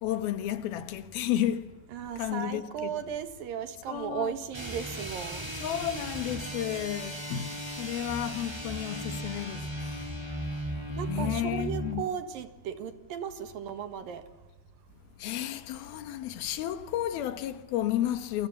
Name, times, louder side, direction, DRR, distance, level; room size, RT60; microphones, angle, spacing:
voice 1, 0.0-1.9 2.2-3.0 3.9-4.4 5.6-10.2 10.9-12.1 15.2-18.5, left 11 dB, 80° left, 3.2 m, -32 dB
voice 2, 1.9-5.5 11.0-14.2, right 8 dB, 75° right, 3.4 m, -36 dB
sound 1, 4.5-12.0, right 1 dB, 10° right, 2.7 m, -36 dB
28.0 x 24.5 x 7.3 m
omnidirectional pair, 4.3 m